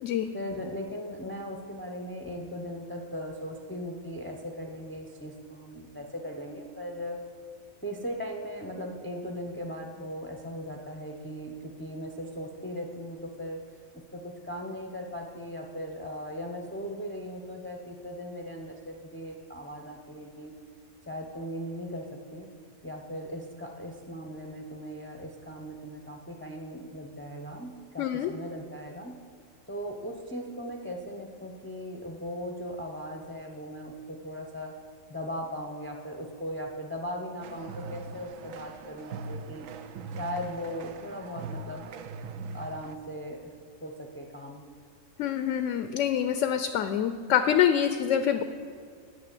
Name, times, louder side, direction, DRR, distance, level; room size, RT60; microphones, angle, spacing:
voice 1, 0.3-7.2 7.8-13.6 13.9-20.5 21.1-22.5 22.8-29.2 29.7-34.8 35.1-39.7 40.1-41.9 42.5-43.5 43.8-44.6, equal, 10° left, 2 dB, 0.6 m, -38 dB
voice 2, 28.0-28.3 45.2-48.4, left 9 dB, 70° left, 10 dB, 0.9 m, -26 dB
sound 1, 37.4-42.9, right 3 dB, 75° right, 1.0 m, -41 dB
9.6 x 6.4 x 8.4 m, 2.2 s
omnidirectional pair, 1.4 m